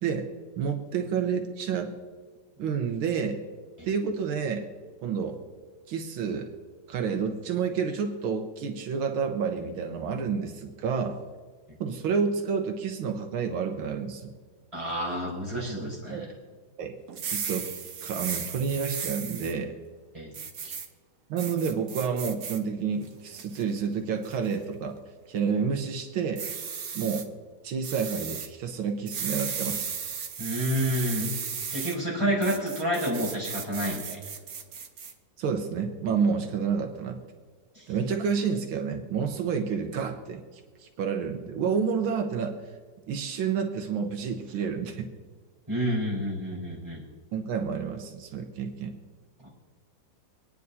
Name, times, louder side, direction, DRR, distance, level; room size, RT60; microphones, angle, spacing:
voice 1, 0.6-1.9 2.6-3.4 3.8-4.7 5.0-5.4 5.9-6.5 6.9-11.2 11.8-14.3 16.1-16.2 16.8-17.0 17.2-17.7 18.0-19.7 21.3-25.0 25.3-26.4 26.9-27.3 27.6-29.9 32.2-32.4 35.4-37.2 37.9-42.6 43.1-45.1 47.3-48.9, right 6 dB, 85° right, 5 dB, 1.7 m, -29 dB
voice 2, 14.7-16.2 20.1-20.3 20.6-20.7 30.4-31.3 31.7-34.2 37.7-37.8 45.7-47.0 49.4-49.5, equal, 15° right, -6 dB, 4.3 m, -29 dB
sound 1, 17.1-19.5 20.3-20.9 21.4-22.6 23.1-23.6 24.2-24.5 26.4-27.2 27.8-28.5 29.1-32.0 32.4-35.1, right 6 dB, 55° right, 1.2 m, -35 dB
25.5 x 9.8 x 2.7 m, 1.5 s
omnidirectional pair, 2.2 m